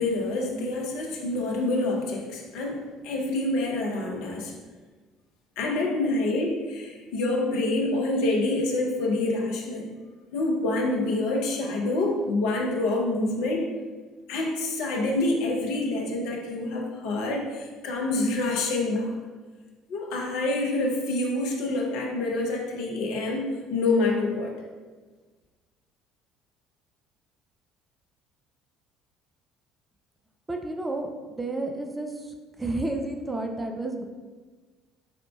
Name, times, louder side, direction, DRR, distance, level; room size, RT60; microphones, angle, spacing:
voice 1, 0.0-4.5 5.6-9.9 10.3-13.7 14.3-19.2 19.9-24.5, left 2 dB, 60° left, 0 dB, 0.7 m, -27 dB
voice 2, 30.5-32.3 32.6-34.0, right 2 dB, 15° right, 3 dB, 0.4 m, -31 dB
4.4 x 3.7 x 2.3 m, 1.4 s
figure-of-eight pair, 55°, 0 cm